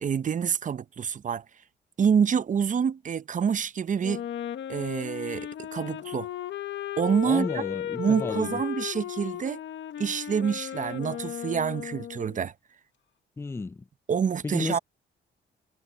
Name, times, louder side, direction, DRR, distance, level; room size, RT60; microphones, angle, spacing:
voice 1, 0.0-1.4 2.0-4.2 4.7-6.3 7.0-7.5 8.0-9.6 10.0-12.5 14.1-14.8, right 7 dB, 40° right, 0.7 m, -27 dB
Wind instrument woodwind instrument, 4.0-12.4, left 10 dB, 65° left, 1.5 m, -35 dB
voice 2, 7.2-8.6 13.4-13.8 14.4-14.8, left 3 dB, 10° left, 0.4 m, -32 dB
cardioid pair, 90°, 20 cm